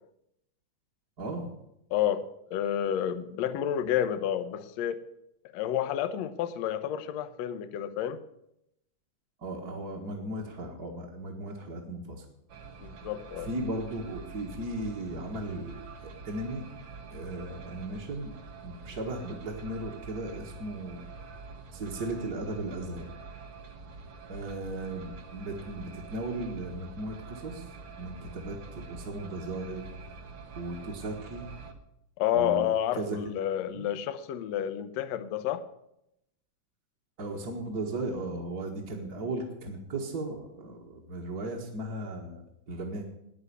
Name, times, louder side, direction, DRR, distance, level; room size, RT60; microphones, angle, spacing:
voice 1, 1.2-1.5 9.4-12.3 13.4-16.6 17.1-18.3 18.6-21.5 21.7-23.1 24.3-29.8 30.1-30.2 30.5-31.5 32.3-32.7 32.9-33.2 33.6-33.9 37.2-43.0, right 2 dB, 35° right, 1.8 m, -36 dB
voice 2, 1.9-5.0 5.5-8.2 12.8-13.5 32.2-35.7, left 10 dB, 70° left, 1.8 m, -30 dB
sound 1, 12.5-31.7, right 4 dB, 55° right, 1.8 m, -46 dB
10.0 x 9.8 x 9.6 m
omnidirectional pair, 3.6 m